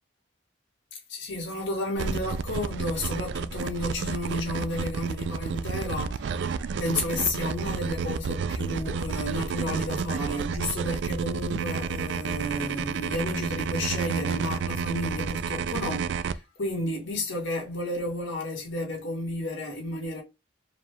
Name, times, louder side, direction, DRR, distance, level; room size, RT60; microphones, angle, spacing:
voice 1, 1.1-20.2, left 1 dB, 85° left, 1.7 m, -32 dB
sound 1, 2.0-16.3, right 5 dB, 70° right, 0.3 m, -31 dB
4.9 x 2.3 x 3.3 m
head